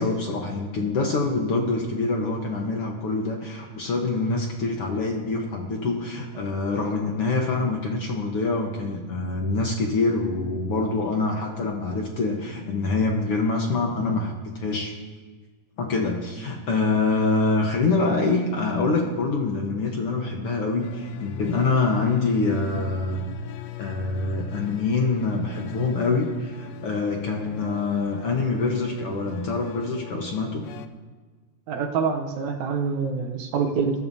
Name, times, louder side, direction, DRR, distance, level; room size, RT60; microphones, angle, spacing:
voice 1, 0.0-15.0 15.8-23.2 23.8-30.6, left 3 dB, 60° left, 1 dB, 1.6 m, -25 dB
sound 1, 20.8-30.9, left 12 dB, 80° left, 1.5 m, -38 dB
voice 2, 31.7-34.0, right 5 dB, 70° right, 4 dB, 2.0 m, -26 dB
21.0 x 12.5 x 2.7 m, 1.5 s
omnidirectional pair, 3.7 m